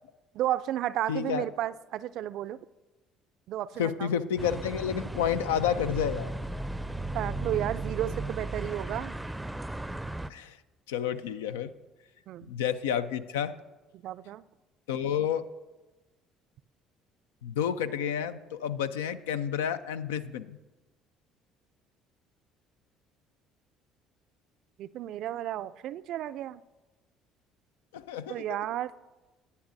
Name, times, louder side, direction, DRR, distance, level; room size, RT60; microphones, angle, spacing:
voice 1, 0.3-2.6 3.5-4.1 7.1-9.2 12.3-12.5 14.0-14.5 24.8-26.6 28.3-29.0, right 12 dB, 60° right, 17 dB, 0.4 m, -33 dB
voice 2, 1.1-1.4 3.8-6.3 10.3-10.6 10.9-11.7 12.5-13.5 14.9-15.5 17.4-20.6 27.9-28.4, left 8 dB, 80° left, 12 dB, 0.5 m, -30 dB
sound 1, 4.4-10.3, right 2 dB, 5° right, 0.5 m, -35 dB
20.0 x 9.5 x 2.7 m, 1.2 s
hypercardioid pair, 55°, 0 cm